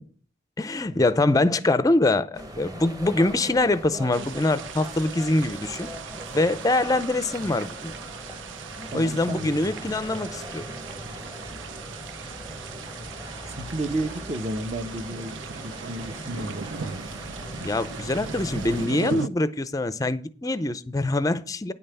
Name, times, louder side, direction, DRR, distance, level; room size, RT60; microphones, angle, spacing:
voice 1, 0.6-5.9 6.3-7.9 8.9-10.6 17.6-21.7, left 2 dB, 20° left, 0.5 m, -24 dB
sound 1, 2.3-18.9, equal, 20° right, 1.1 m, -39 dB
sound 2, 4.1-19.3, right 6 dB, 80° right, 0.5 m, -39 dB
voice 2, 8.9-9.5 13.6-17.0, right 1 dB, 35° right, 0.8 m, -32 dB
9.6 x 5.5 x 6.7 m
head